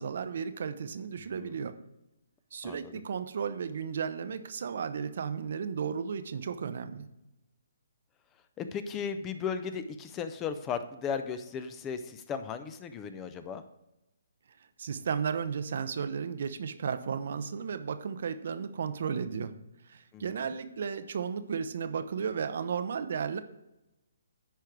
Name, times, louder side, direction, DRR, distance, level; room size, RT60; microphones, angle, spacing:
voice 1, 0.0-1.8 2.5-7.1 14.8-19.5 19.8-23.4, right 6 dB, 60° right, 11 dB, 0.7 m, -34 dB
voice 2, 1.2-1.5 2.6-3.0 8.6-13.6 20.1-20.6, left 6 dB, 20° left, 10 dB, 0.6 m, -36 dB
10.0 x 4.7 x 4.6 m, 0.93 s
hypercardioid pair, 145°, 0 cm